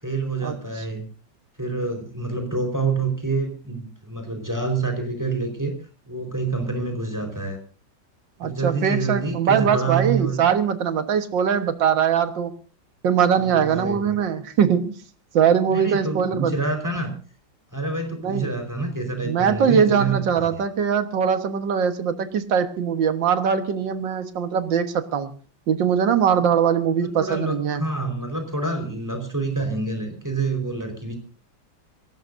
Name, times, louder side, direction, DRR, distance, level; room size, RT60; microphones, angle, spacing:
voice 1, 0.0-1.1 1.6-5.8 6.1-7.6 8.4-10.4 13.4-14.2 15.7-17.1 17.7-20.6 27.0-31.2, right 3 dB, 10° right, 5 dB, 4.5 m, -27 dB
voice 2, 8.4-12.5 13.0-15.0 15.3-16.5 18.2-18.5 19.2-25.3 25.7-27.8, right 7 dB, 75° right, 9 dB, 2.1 m, -21 dB
24.5 x 17.5 x 2.7 m, 0.37 s
omnidirectional pair, 2.0 m